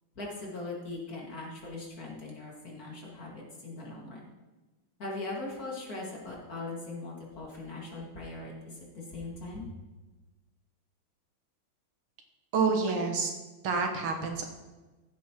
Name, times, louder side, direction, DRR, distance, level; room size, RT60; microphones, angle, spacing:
voice 1, 0.2-4.2 5.0-9.7, left 2 dB, 45° left, -3 dB, 2.5 m, -40 dB
voice 2, 12.5-13.3 13.6-14.5, right 4 dB, 90° right, 3 dB, 2.2 m, -28 dB
15.0 x 8.3 x 3.0 m, 1.2 s
omnidirectional pair, 2.3 m